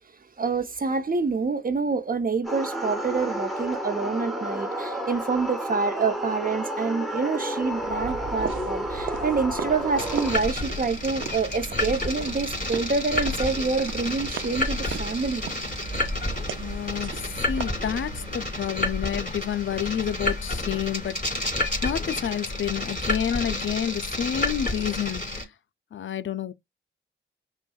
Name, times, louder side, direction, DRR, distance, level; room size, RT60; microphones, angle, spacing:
voice 1, 0.4-15.5, right 4 dB, 40° right, 0.8 m, -27 dB
sound 1, 2.4-10.4, equal, ahead, 1.2 m, -31 dB
sound 2, 7.7-18.6, right 6 dB, 70° right, 0.5 m, -38 dB
sound 3, 10.0-25.5, left 2 dB, 40° left, 2.5 m, -30 dB
voice 2, 16.6-25.5 25.9-26.5, left 9 dB, 65° left, 0.4 m, -29 dB
6.1 x 2.3 x 2.3 m
cardioid pair, 50°, 21 cm